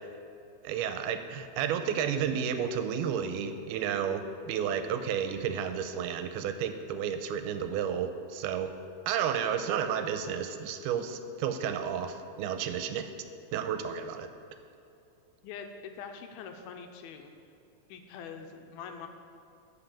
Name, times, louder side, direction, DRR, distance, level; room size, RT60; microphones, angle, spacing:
voice 1, 0.6-8.7 9.1-13.1 13.5-14.3, right 8 dB, 85° right, 9 dB, 2.6 m, -32 dB
voice 2, 15.4-17.3 17.9-19.1, left 6 dB, 85° left, 5 dB, 2.6 m, -44 dB
12.0 x 5.9 x 7.2 m, 2.7 s
omnidirectional pair, 4.4 m